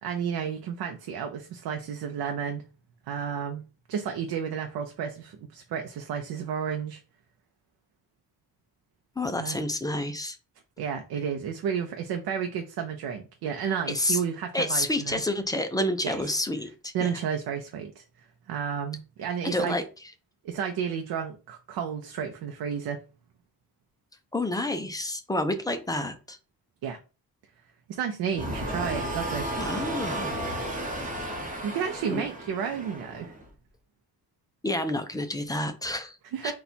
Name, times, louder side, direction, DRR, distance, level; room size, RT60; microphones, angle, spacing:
voice 1, 0.0-2.6 3.1-3.6 3.9-7.0 9.4-9.6 10.8-15.2 16.0-16.3 16.9-19.8 20.4-23.0 26.8-27.0 27.9-29.5 31.6-33.3 36.3-36.5, right 7 dB, 90° right, 0.6 m, -32 dB
voice 2, 9.2-10.4 13.9-14.2 14.5-17.1 19.4-19.8 24.3-26.4 29.6-30.3 32.1-32.3 34.6-36.2 36.4-36.5, left 1 dB, 10° left, 0.3 m, -29 dB
sound 1, 28.3-33.5, right 1 dB, 20° right, 0.9 m, -33 dB
4.0 x 2.3 x 4.3 m
wide cardioid pair, 175°, 37 cm